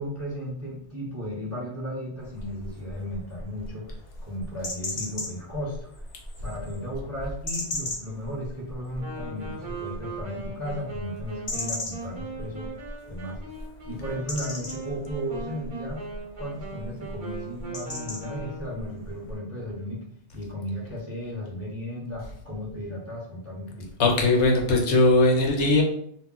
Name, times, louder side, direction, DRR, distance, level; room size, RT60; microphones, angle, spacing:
voice 1, 0.0-4.0 4.2-5.9 6.4-12.7 13.1-13.4 13.8-16.1 16.4-20.0 20.3-23.9, equal, 15° right, -5 dB, 0.6 m, -35 dB
sound 1, 2.2-19.4, left 1 dB, 35° left, 0.7 m, -39 dB
Wind instrument woodwind instrument, 9.0-18.9, right 3 dB, 45° right, 0.9 m, -39 dB
voice 2, 24.0-25.8, left 2 dB, 75° left, 1 dB, 0.9 m, -19 dB
2.3 x 2.0 x 3.7 m, 0.64 s
omnidirectional pair, 1.2 m